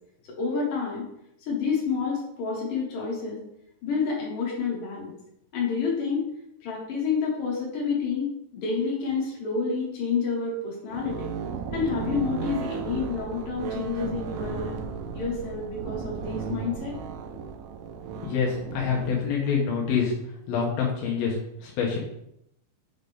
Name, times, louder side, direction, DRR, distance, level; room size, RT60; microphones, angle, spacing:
voice 1, 0.3-1.0 1.5-3.4 3.8-5.1 5.5-6.2 6.6-11.3 11.7-14.7 15.1-17.0, left 5 dB, 60° left, -4 dB, 2.5 m, -29 dB
sound 1, 10.9-19.1, right 6 dB, 85° right, 2.8 m, -35 dB
voice 2, 18.1-20.1 20.5-22.0, left 6 dB, 85° left, -3 dB, 2.1 m, -26 dB
7.3 x 3.9 x 3.5 m, 0.79 s
omnidirectional pair, 5.8 m